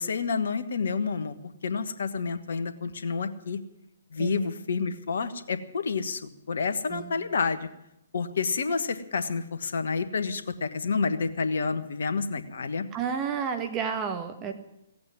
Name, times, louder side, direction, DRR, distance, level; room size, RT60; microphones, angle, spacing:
voice 1, 0.0-1.3 1.6-3.6 4.1-7.7 8.1-12.9, left 5 dB, 65° left, 10 dB, 1.4 m, -29 dB
voice 2, 12.9-14.5, right 7 dB, 25° right, 6 dB, 1.4 m, -31 dB
16.0 x 8.6 x 9.8 m, 0.83 s
figure-of-eight pair, 130°, 0 cm